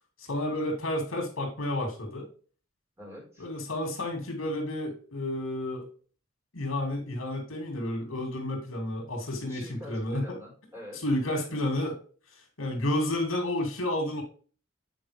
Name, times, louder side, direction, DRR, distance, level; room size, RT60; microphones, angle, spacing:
voice 1, 0.2-2.3 3.4-5.8 6.5-10.4 10.9-12.0 12.3-14.2, left 1 dB, 75° left, 2 dB, 2.6 m, -31 dB
voice 2, 3.0-3.5 9.5-11.6, left 1 dB, 15° right, -2 dB, 3.7 m, -46 dB
8.4 x 4.8 x 3.4 m, 0.41 s
head